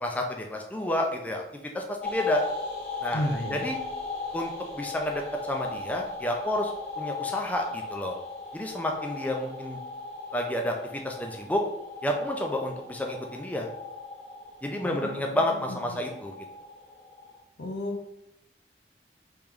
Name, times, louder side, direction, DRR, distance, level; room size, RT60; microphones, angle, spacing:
voice 1, 0.0-1.4 1.7-2.4 3.0-3.8 4.3-5.2 5.5-6.7 7.0-8.1 8.5-9.8 10.3-11.6 12.0-13.7 14.6-16.3, left 1 dB, 10° left, 2 dB, 0.4 m, -30 dB
sound 1, 2.0-17.4, left 3 dB, 35° left, 1.0 m, -38 dB
voice 2, 3.1-3.7 14.8-16.0 17.6-17.9, left 1 dB, 90° left, 3 dB, 0.7 m, -33 dB
3.2 x 2.9 x 3.6 m, 0.87 s
head